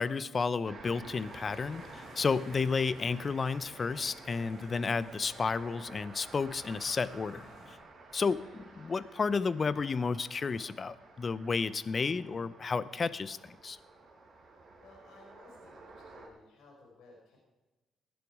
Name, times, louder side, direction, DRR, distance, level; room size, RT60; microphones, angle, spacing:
voice 1, 0.0-7.8 8.1-8.4 8.8-13.8, left 4 dB, 35° left, 17 dB, 0.6 m, -32 dB
sound 1, 0.6-16.3, right 3 dB, 50° right, 4.7 m, -52 dB
sound 2, 1.0-7.7, left 1 dB, 65° left, 4.9 m, -56 dB
voice 2, 8.2-8.5 14.8-17.4, left 3 dB, 80° left, -2 dB, 4.8 m, -58 dB
17.0 x 10.5 x 4.9 m, 1.1 s
cardioid pair, 90°, 0 cm